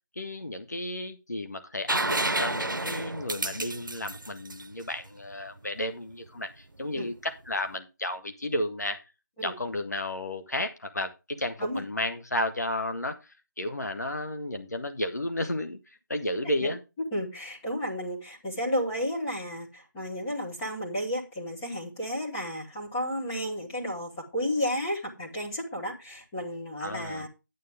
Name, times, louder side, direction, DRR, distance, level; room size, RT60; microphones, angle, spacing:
voice 1, 0.1-9.0 9.4-15.8 16.1-16.8 26.8-27.2, left 1 dB, 55° left, 7 dB, 1.7 m, -33 dB
sound 1, 1.9-5.6 7.5-7.6, right 2 dB, 85° right, 0.7 m, -30 dB
voice 2, 17.1-27.3, equal, 10° left, -5 dB, 1.3 m, -32 dB
9.5 x 8.7 x 3.6 m, 0.27 s
figure-of-eight pair, 170°, 11 cm